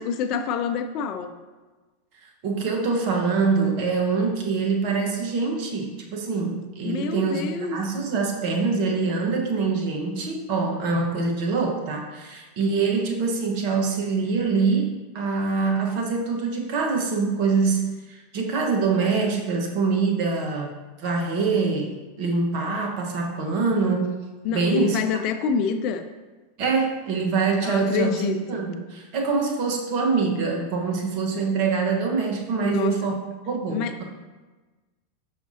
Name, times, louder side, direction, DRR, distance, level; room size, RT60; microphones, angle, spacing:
voice 1, 0.0-1.3 6.8-7.8 24.4-26.1 27.6-28.7 32.6-33.1 33.7-33.9, left 6 dB, 50° left, 8 dB, 0.5 m, -27 dB
voice 2, 2.4-7.4 7.7-24.2 24.5-25.0 26.6-33.2 33.5-34.0, right 4 dB, 55° right, 1 dB, 1.2 m, -24 dB
6.0 x 5.7 x 2.8 m, 1.3 s
hypercardioid pair, 95°, 0 cm